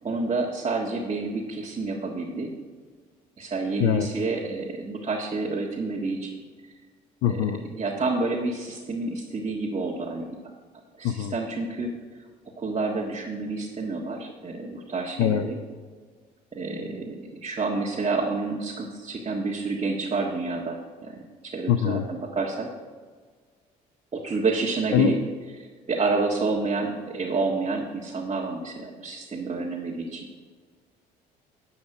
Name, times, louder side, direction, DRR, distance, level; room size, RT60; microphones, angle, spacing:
voice 1, 0.0-2.5 3.4-6.3 7.2-10.3 11.0-11.9 12.6-15.6 16.5-22.7 24.1-25.2 25.9-30.3, right 3 dB, 30° right, -3 dB, 1.6 m, -29 dB
voice 2, 7.2-7.6 11.0-11.3 15.2-15.5 21.7-22.0 24.9-25.1, left 9 dB, 75° left, 9 dB, 0.6 m, -23 dB
11.0 x 5.8 x 5.9 m, 1.5 s
hypercardioid pair, 60°, 19 cm